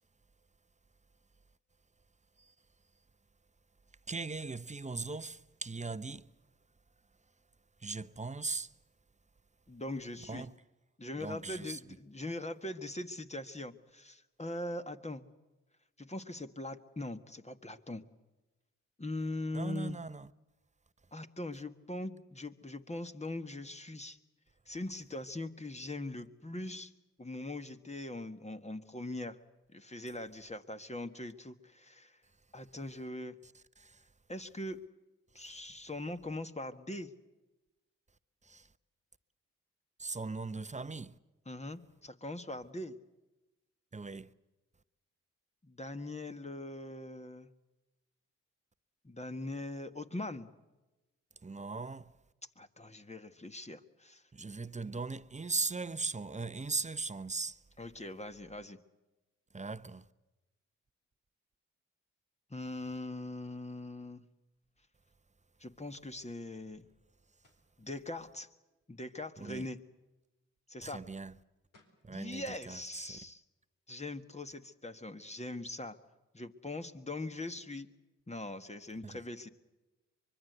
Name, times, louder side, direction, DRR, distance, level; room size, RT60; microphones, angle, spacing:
voice 1, 4.1-6.3 7.8-8.7 10.3-10.5 11.2-11.8 19.5-20.3 33.4-34.1 35.3-35.5 38.4-38.7 40.0-41.2 43.9-44.3 51.4-52.2 54.3-57.6 59.5-60.1 69.4-69.7 70.8-71.4 72.0-73.2 79.0-79.2, right 3 dB, 20° right, 0.9 m, -39 dB
voice 2, 9.7-10.5 11.0-15.2 16.0-18.0 19.0-20.0 21.1-24.2 24.6-26.9 27.2-29.4 29.7-32.2 32.5-33.4 34.3-34.8 35.3-37.1 41.4-43.0 45.6-47.5 49.0-50.5 52.5-54.2 57.8-58.8 62.5-64.2 65.6-66.9 67.8-68.5 68.9-69.8 70.7-71.0 72.1-73.4 73.9-76.0 76.3-77.9 78.3-79.5, left 2 dB, 20° left, 1.7 m, -41 dB
sound 1, 67.4-67.7 71.4-71.5 71.7-72.1, left 2 dB, 70° left, 4.4 m, -66 dB
24.5 x 22.0 x 8.1 m
supercardioid pair, 45°, 34 cm